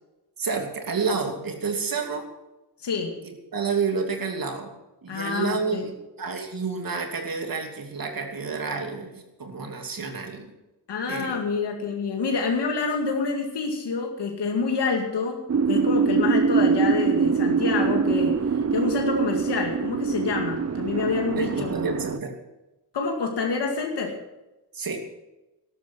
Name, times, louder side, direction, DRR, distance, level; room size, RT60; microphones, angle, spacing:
voice 1, 0.4-2.3 3.2-4.7 5.0-10.5 11.1-11.4 21.4-22.3 24.7-25.0, right 4 dB, 55° right, 4 dB, 2.8 m, -29 dB
voice 2, 2.8-3.1 5.1-5.8 10.9-15.4 15.7-21.7 22.9-24.1, left 4 dB, 75° left, 1 dB, 2.3 m, -27 dB
sound 1, 15.5-22.2, right 5 dB, 40° right, 0.8 m, -23 dB
13.5 x 12.0 x 6.2 m, 1.0 s
cardioid pair, 100°, 41 cm